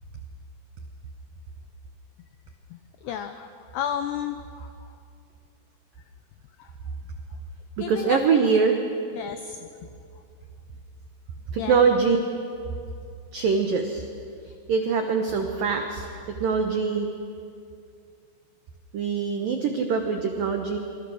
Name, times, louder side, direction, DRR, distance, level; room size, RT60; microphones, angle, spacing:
voice 1, 3.0-3.5 3.7-4.7 7.8-8.2 9.2-9.6 11.6-11.8, left 9 dB, 90° left, 8 dB, 2.3 m, -31 dB
voice 2, 7.8-8.8 11.5-12.2 13.3-14.0 14.4-17.1 18.9-20.8, right 5 dB, 90° right, 4 dB, 1.9 m, -23 dB
25.5 x 25.5 x 6.5 m, 2.5 s
omnidirectional pair, 5.9 m